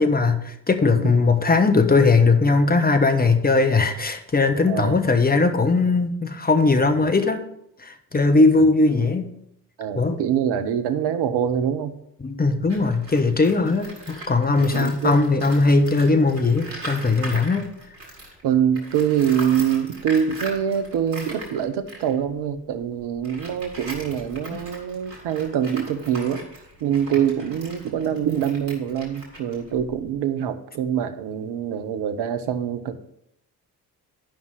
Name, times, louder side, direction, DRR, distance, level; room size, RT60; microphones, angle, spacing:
voice 1, 0.0-7.4 7.8-9.3 9.9-10.2 12.2-17.7 24.5-24.6, left 3 dB, 20° left, 7 dB, 1.2 m, -19 dB
voice 2, 9.8-12.0 14.7-15.2 18.4-26.4 26.8-33.0, right 9 dB, 55° right, 9 dB, 1.0 m, -24 dB
Tools, 12.7-18.4 18.7-30.2, right 1 dB, 85° right, 1.7 m, -40 dB
10.0 x 5.5 x 4.8 m, 0.78 s
figure-of-eight pair, 45°, 48 cm